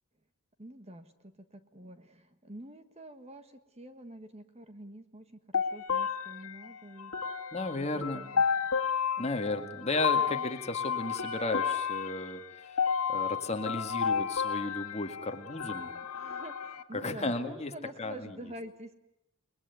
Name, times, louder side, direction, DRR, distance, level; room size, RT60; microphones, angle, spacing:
voice 1, 0.6-7.4 7.7-8.7 9.2-9.3 16.1-18.9, right 1 dB, 30° right, 9 dB, 1.5 m, -47 dB
sound 1, 5.5-16.8, left 6 dB, 80° left, 1.8 m, -32 dB
voice 2, 7.5-8.2 9.2-12.8 13.1-15.9 16.9-17.7 18.0-18.3, left 2 dB, 30° left, 6 dB, 2.0 m, -34 dB
29.0 x 21.5 x 9.5 m, 0.85 s
head